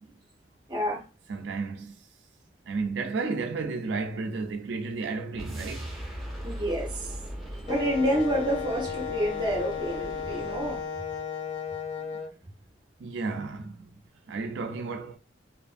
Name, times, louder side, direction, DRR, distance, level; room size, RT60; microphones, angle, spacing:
voice 1, 0.7-1.0 6.4-7.1 7.6-10.8, equal, 25° right, 0.8 m, -28 dB
voice 2, 1.3-2.0 2.7-5.9 13.0-13.8 14.3-15.2, right 4 dB, 70° right, 0.3 m, -32 dB
sound 1, 5.3-11.0, right 1 dB, ahead, 1.2 m, -39 dB
Wind instrument woodwind instrument, 7.7-12.3, left 7 dB, 40° left, 0.4 m, -34 dB
2.5 x 2.4 x 2.4 m
head